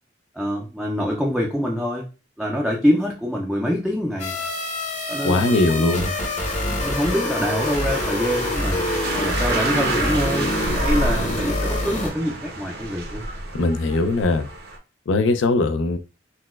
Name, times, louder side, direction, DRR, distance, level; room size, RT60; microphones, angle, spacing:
voice 1, 0.3-2.1 2.4-4.5 5.1-6.0 6.7-8.9 9.1-10.5 10.8-13.3, equal, ahead, 0.3 m, -25 dB
sound 1, 4.2-12.1, left 1 dB, 40° left, 0.8 m, -26 dB
voice 2, 5.2-6.1 13.5-14.5 15.1-16.0, left 2 dB, 85° left, 0.4 m, -20 dB
sound 2, 6.1-14.8, right 2 dB, 55° right, 0.6 m, -30 dB
4.0 x 2.1 x 2.2 m
head